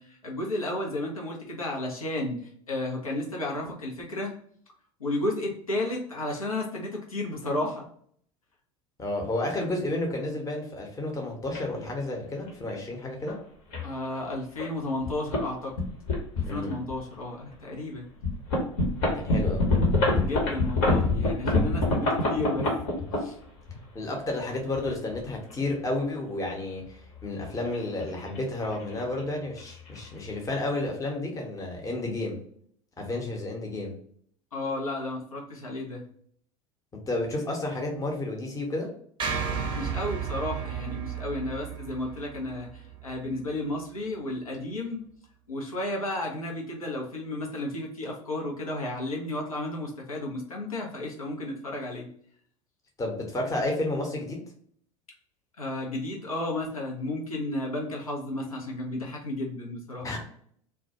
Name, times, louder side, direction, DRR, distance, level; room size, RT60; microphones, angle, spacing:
voice 1, 0.0-4.3 5.0-7.9 13.8-15.7 16.4-18.1 20.2-22.7 23.2-23.4 34.5-36.0 39.7-45.0 45.5-52.1 55.6-60.1, left 1 dB, 85° left, -2 dB, 0.6 m, -33 dB
voice 2, 9.0-13.4 16.4-16.8 19.1-19.6 23.9-32.4 33.0-33.9 37.1-38.9 53.0-54.4 60.0-60.2, left 2 dB, 20° left, 1 dB, 0.8 m, -31 dB
sound 1, 11.5-11.6 12.5-12.7 13.3-13.4 13.7-13.9 14.6-14.7 15.0-15.4 15.7-17.0 17.5-17.6 18.2-23.8 24.6-25.5 27.2-28.4 28.6-28.9 29.2-29.3 29.6-30.0, left 2 dB, 55° left, 0.9 m, -26 dB
sound 2, 39.2-43.5, right 7 dB, 25° right, 0.6 m, -33 dB
2.2 x 2.2 x 2.8 m, 0.62 s
figure-of-eight pair, 75°, 18 cm